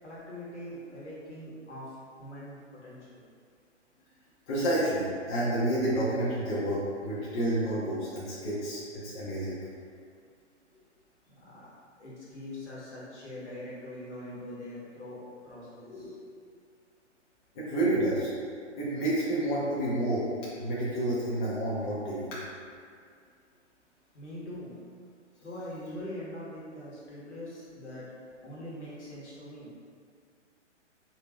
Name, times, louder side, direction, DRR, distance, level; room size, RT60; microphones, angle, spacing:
voice 1, 0.0-3.2 10.7-10.8 11.3-16.2 24.1-24.7 25.4-28.1 28.4-29.7, left 1 dB, 70° left, -7 dB, 1.5 m, -43 dB
voice 2, 4.5-9.6 17.5-18.3 18.8-20.3 20.6-22.4, right 1 dB, 30° left, -9 dB, 0.9 m, -29 dB
4.9 x 2.9 x 2.3 m, 2.2 s
figure-of-eight pair, 125°, 36 cm